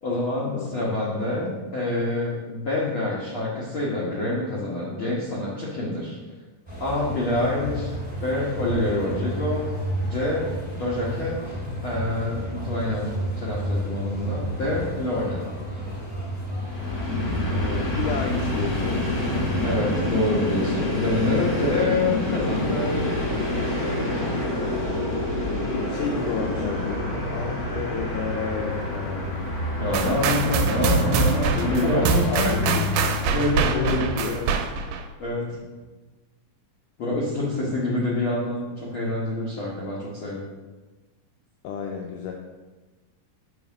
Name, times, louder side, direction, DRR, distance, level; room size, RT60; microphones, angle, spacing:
voice 1, 0.0-6.2 6.8-7.9 8.2-9.7 10.0-11.4 11.8-13.1 13.4-15.4 19.6-23.1 29.7-34.4 34.9-35.6 37.0-40.4, left 2 dB, 65° left, -6 dB, 1.3 m, -26 dB
sound 1, 6.7-20.3, equal, 15° left, 1.4 m, -32 dB
Train, 16.6-34.7, left 1 dB, 45° left, 1.2 m, -27 dB
voice 2, 17.5-19.1 25.6-29.3 29.9-30.4 31.7-31.9 32.3-32.8 33.7-34.4 41.6-42.3, left 6 dB, 80° left, 1 dB, 1.9 m, -31 dB
sound 2, 29.9-35.1, right 6 dB, 80° right, 2.0 m, -25 dB
7.1 x 3.4 x 6.0 m, 1.2 s
omnidirectional pair, 4.0 m